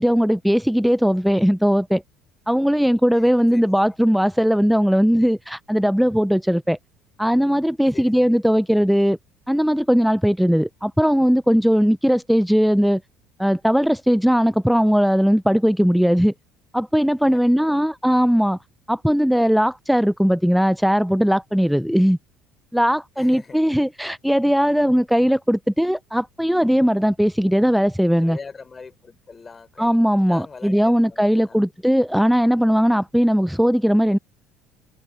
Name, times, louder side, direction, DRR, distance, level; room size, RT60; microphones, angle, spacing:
voice 1, 0.0-2.0 2.5-6.8 7.2-9.2 9.5-13.0 13.4-16.3 16.7-18.6 18.9-22.2 22.7-28.4 29.8-34.2, equal, ahead, 0.3 m, -19 dB
voice 2, 3.2-3.7 7.9-8.4 17.3-17.9 18.3-18.4 23.2-23.8 28.2-31.7, left 4 dB, 25° left, 3.9 m, -42 dB
supercardioid pair, 90°, 0 cm